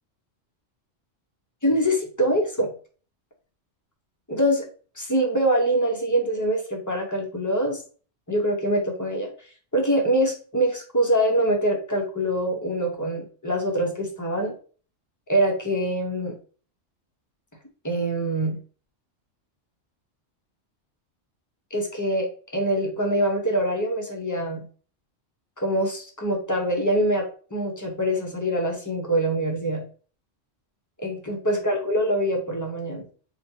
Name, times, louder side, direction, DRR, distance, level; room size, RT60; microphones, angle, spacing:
voice 1, 1.6-2.7 4.3-4.7 5.0-7.8 8.3-9.3 9.7-14.5 15.3-16.3 17.8-18.6 21.7-24.6 25.6-29.8 31.0-33.1, right 1 dB, 20° left, 1 dB, 0.7 m, -24 dB
4.4 x 2.9 x 2.7 m, 0.40 s
omnidirectional pair, 1.3 m